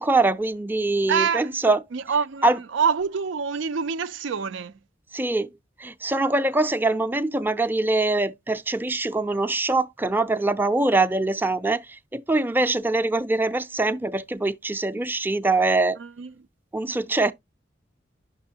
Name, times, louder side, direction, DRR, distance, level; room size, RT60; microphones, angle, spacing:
voice 1, 0.0-1.8 2.4-2.6 5.1-5.5 5.8-16.0 16.7-17.3, right 2 dB, 10° right, 0.5 m, -23 dB
voice 2, 1.1-1.5 1.9-4.7 16.0-16.3, right 6 dB, 90° right, 0.5 m, -26 dB
9.5 x 6.2 x 2.8 m
head